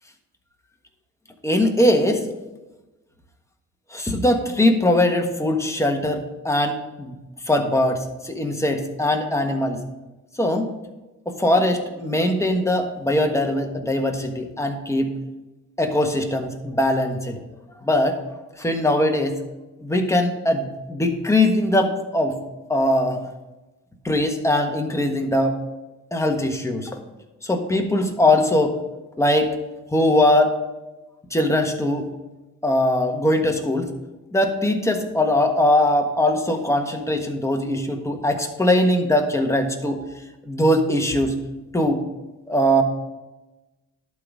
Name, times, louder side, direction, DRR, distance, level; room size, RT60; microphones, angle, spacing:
voice 1, 1.4-2.2 3.9-7.2 7.4-9.8 10.4-10.7 11.3-15.1 15.8-17.4 17.8-18.2 18.6-19.4 19.8-22.3 22.7-23.2 24.0-25.6 26.1-27.0 27.4-28.7 29.2-29.5 29.9-30.6 31.3-32.1 32.6-33.9 34.3-40.0 40.4-41.3 41.7-42.0 42.5-42.8, left 1 dB, 10° left, 3 dB, 1.4 m, -21 dB
11.5 x 4.0 x 6.1 m, 1.1 s
cardioid pair, 90°, 30 cm